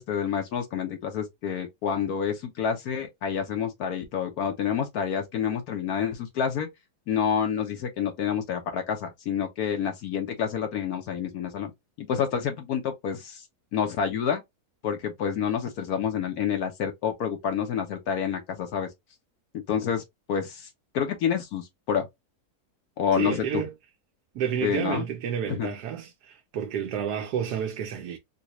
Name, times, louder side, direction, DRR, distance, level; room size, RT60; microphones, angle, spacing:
voice 1, 0.0-6.7 7.1-11.7 12.0-13.4 13.7-14.4 14.8-18.9 19.7-20.0 20.3-22.1 23.0-23.6 24.6-25.0 25.5-25.7, left 7 dB, 75° left, 1.2 m, -28 dB
voice 2, 23.1-23.7 24.3-28.2, right 8 dB, 90° right, 1.2 m, -30 dB
3.9 x 2.2 x 2.9 m
omnidirectional pair, 1.7 m